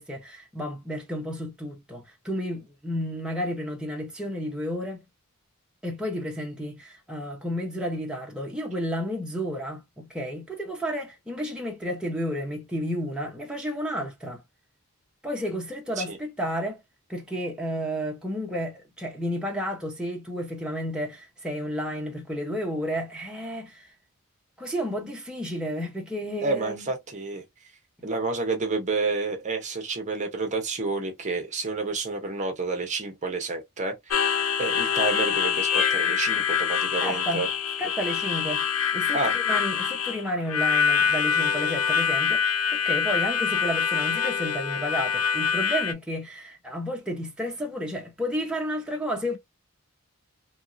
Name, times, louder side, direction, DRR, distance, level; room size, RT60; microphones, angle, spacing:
voice 1, 0.0-5.0 5.8-14.4 15.2-16.8 17.1-23.9 24.6-26.9 37.0-37.5 37.8-38.7 38.9-49.4, equal, 5° right, 0.8 m, -32 dB
voice 2, 26.4-27.4 28.0-37.5 39.1-39.4, right 3 dB, 35° right, 0.7 m, -29 dB
Harmonica, 34.1-45.9, left 7 dB, 70° left, 0.5 m, -25 dB
2.9 x 2.6 x 2.5 m
head